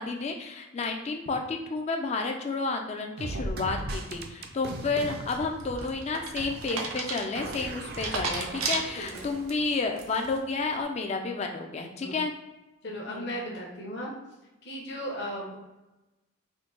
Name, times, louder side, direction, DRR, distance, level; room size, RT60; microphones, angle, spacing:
voice 1, 0.0-12.3 13.1-13.3, left 3 dB, 30° left, 3 dB, 0.3 m, -31 dB
sound 1, 3.2-6.3 6.5-6.7 7.4-9.7, right 2 dB, 50° right, 0.4 m, -38 dB
sound 2, 5.3-9.5 10.0-10.4, right 4 dB, 85° right, 0.6 m, -34 dB
voice 2, 8.9-9.3 12.0-12.2 12.8-14.1 14.6-15.6, equal, 55° left, -2 dB, 0.8 m, -36 dB
3.7 x 2.6 x 3.7 m, 1.0 s
head